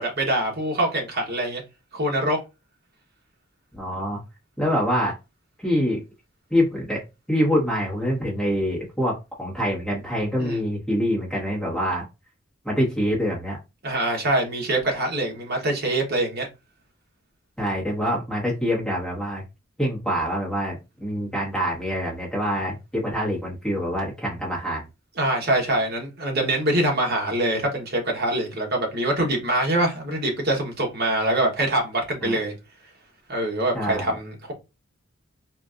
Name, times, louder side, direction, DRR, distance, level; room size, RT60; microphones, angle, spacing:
voice 1, 0.0-1.6 1.9-2.4 10.4-10.6 13.8-16.5 25.2-32.5 33.3-34.5, right 1 dB, 50° right, 1.1 m, -24 dB
voice 2, 3.7-4.2 4.6-5.1 5.6-6.0 6.5-7.0 7.3-12.0 12.6-13.6 17.6-19.4 19.8-24.8 32.2-32.4 33.7-34.1, equal, 5° left, 1.2 m, -25 dB
3.9 x 2.5 x 2.4 m
head